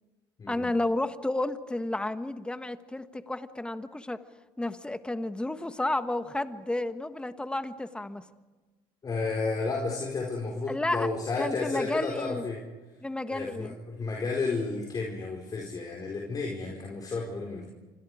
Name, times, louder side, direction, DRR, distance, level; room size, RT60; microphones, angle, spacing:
voice 1, 0.5-4.2 4.6-8.2 10.7-11.1 11.4-12.4 13.0-13.7, left 2 dB, 10° left, 10 dB, 1.4 m, -31 dB
voice 2, 9.0-12.6 13.3-17.8, left 3 dB, 35° left, 0 dB, 4.7 m, -32 dB
28.5 x 25.0 x 5.0 m, 1.3 s
supercardioid pair, 95°, 12 cm